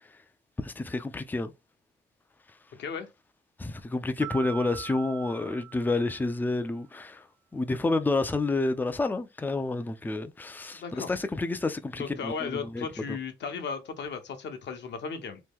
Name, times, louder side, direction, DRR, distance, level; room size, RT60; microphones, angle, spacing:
voice 1, 0.6-1.5 3.6-7.3 7.5-13.2, left 2 dB, 10° left, 0.4 m, -29 dB
Mallet percussion, 4.2-6.6, right 13 dB, 65° right, 0.8 m, -42 dB
voice 2, 10.7-11.1 11.9-15.4, left 6 dB, 60° left, 0.8 m, -35 dB
3.0 x 2.2 x 3.5 m
cardioid pair, 90°, 20 cm